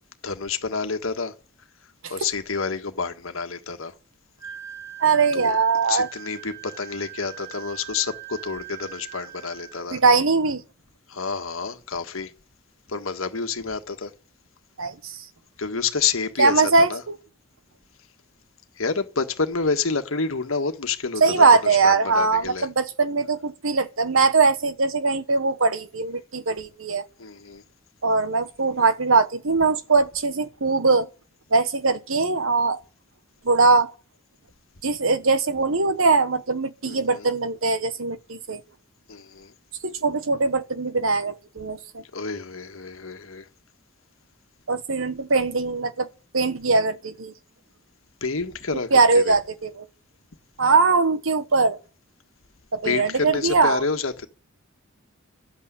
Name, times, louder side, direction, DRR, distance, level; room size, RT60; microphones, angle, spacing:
voice 1, 0.2-1.3 2.1-3.9 5.3-5.5 5.9-10.0 11.1-12.3 12.9-14.1 15.6-17.0 18.8-21.2 21.6-22.7 27.2-27.6 36.8-37.3 39.1-39.5 42.1-43.5 48.2-49.4 52.8-54.3, left 4 dB, 75° left, 1.6 m, -28 dB
Wind instrument woodwind instrument, 4.4-9.9, right 12 dB, 15° right, 1.5 m, -41 dB
voice 2, 5.0-6.1 9.9-10.6 14.8-15.2 16.4-17.1 21.2-27.0 28.0-31.1 31.5-32.8 33.4-33.9 34.8-38.6 39.8-42.0 44.7-46.1 46.3-47.3 48.9-49.9 50.6-51.8 52.7-53.8, right 4 dB, 70° right, 1.3 m, -21 dB
12.0 x 8.6 x 9.9 m
head